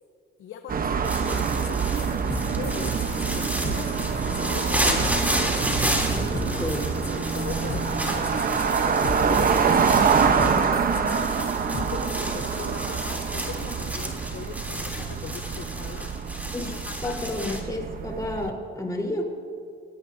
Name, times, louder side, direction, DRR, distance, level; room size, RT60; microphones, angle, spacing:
voice 1, 0.4-5.2 6.5-6.6 7.1-8.9 9.2-10.4 10.9-11.6 11.9-16.3 16.6-17.6, left 8 dB, 80° left, 6 dB, 0.9 m, -40 dB
sound 1, 0.7-18.5, right 6 dB, 45° right, 1.0 m, -26 dB
sound 2, 1.0-17.6, equal, 10° right, 3.2 m, -32 dB
sound 3, 1.6-1.7 2.0-12.3, left 5 dB, 55° left, 1.7 m, -37 dB
voice 2, 6.1-6.9 16.5-16.7 17.0-19.2, left 1 dB, 20° left, -1 dB, 4.1 m, -31 dB
25.0 x 18.0 x 2.8 m, 2.2 s
cardioid pair, 90°, 20 cm